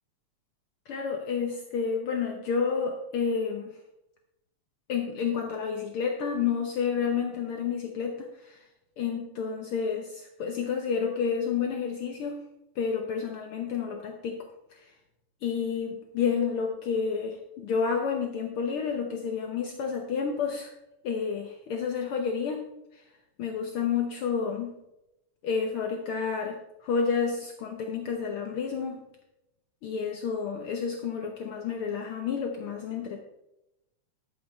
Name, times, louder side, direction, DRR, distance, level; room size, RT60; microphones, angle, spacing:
voice 1, 0.9-3.7 4.9-8.6 9.0-12.4 12.8-14.4 14.7-14.8 15.4-20.7 21.0-22.6 22.9-23.0 23.4-24.7 25.4-29.0 29.8-33.2, left 6 dB, 75° left, 3 dB, 1.2 m, -30 dB
12.0 x 8.8 x 4.2 m, 0.89 s
omnidirectional pair, 3.8 m